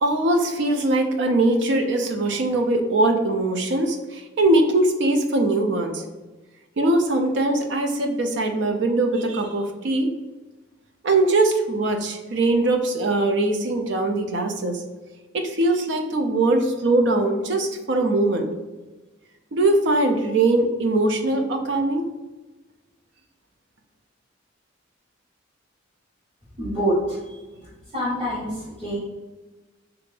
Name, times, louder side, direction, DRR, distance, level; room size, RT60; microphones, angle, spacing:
voice 1, 0.0-6.0 6.8-10.1 11.0-14.8 15.3-18.5 19.5-22.1, right 2 dB, 60° right, 5 dB, 0.4 m, -21 dB
voice 2, 26.6-29.0, equal, 30° right, -13 dB, 1.1 m, -27 dB
3.3 x 2.5 x 3.2 m, 1.2 s
head